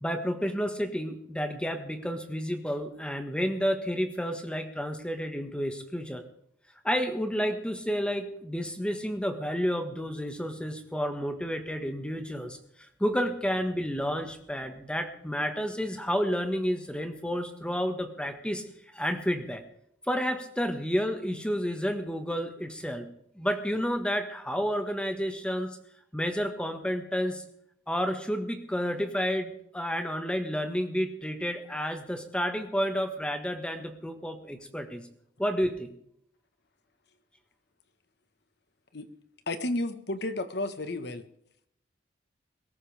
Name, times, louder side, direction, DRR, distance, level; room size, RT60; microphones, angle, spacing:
voice 1, 0.0-6.2 6.8-12.6 13.0-18.6 18.9-19.6 20.1-23.1 23.3-25.7 26.1-27.4 27.9-35.1 35.4-35.9, equal, 5° left, 6 dB, 1.6 m, -30 dB
voice 2, 39.5-41.3, left 2 dB, 65° left, 9 dB, 1.4 m, -32 dB
22.5 x 13.5 x 3.5 m, 0.70 s
head